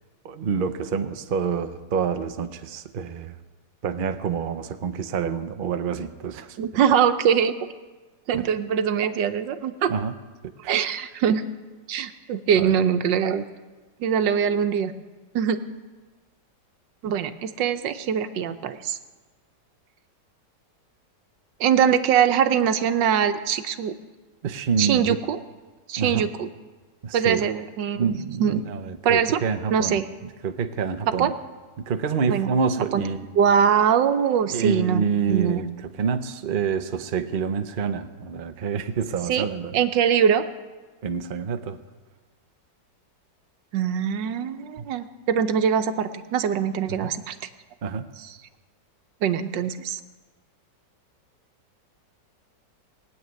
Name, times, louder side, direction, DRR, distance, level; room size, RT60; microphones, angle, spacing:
voice 1, 0.2-3.4 3.8-6.6 8.3-8.5 9.9-10.1 10.6-10.7 12.6-12.8 24.4-25.2 26.0-26.3 27.0-27.5 28.0-30.0 30.4-31.4 31.8-33.3 34.5-39.8 41.0-41.8 46.9-47.1 47.8-48.1, right 6 dB, 50° right, 8 dB, 0.6 m, -27 dB
voice 2, 6.6-7.6 8.3-9.9 10.7-11.4 11.9-13.4 14.0-14.9 15.3-15.6 17.0-19.0 21.6-23.9 24.8-25.4 25.9-26.5 27.1-28.0 28.4-28.6 29.0-29.4 29.7-30.0 31.2-31.3 32.3-32.5 32.9-33.0 33.3-35.6 39.3-39.5 39.7-40.4 43.7-47.4 49.2-50.0, right 8 dB, 90° right, 9 dB, 1.5 m, -22 dB
19.5 x 7.4 x 9.4 m, 1.3 s
omnidirectional pair, 1.9 m